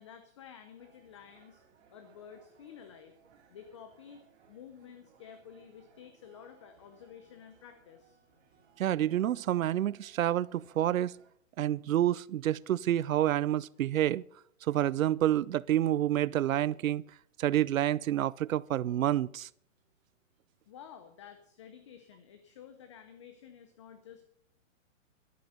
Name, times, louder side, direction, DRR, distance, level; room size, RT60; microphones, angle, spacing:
voice 1, 0.0-1.6 1.9-3.2 3.5-8.2 20.7-24.3, left 8 dB, 25° left, 0.6 m, -52 dB
sound 1, 0.8-11.3, right 6 dB, 55° right, 3.6 m, -64 dB
voice 2, 8.8-11.1 11.6-14.2 14.6-17.0 17.4-19.5, right 12 dB, 80° right, 0.6 m, -28 dB
12.5 x 11.5 x 5.6 m
hypercardioid pair, 165°, 40 cm